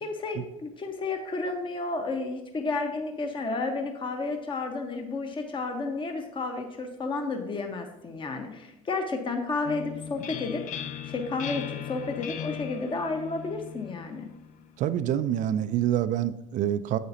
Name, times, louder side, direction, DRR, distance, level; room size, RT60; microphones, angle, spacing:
voice 1, 0.0-10.6 11.1-14.3, left 3 dB, 30° left, 4 dB, 1.3 m, -32 dB
sound 1, 9.6-15.2, left 9 dB, 45° left, 0.7 m, -39 dB
voice 2, 14.8-17.0, right 11 dB, 45° right, 13 dB, 0.5 m, -26 dB
9.4 x 7.9 x 2.9 m, 0.90 s
hypercardioid pair, 75°, 18 cm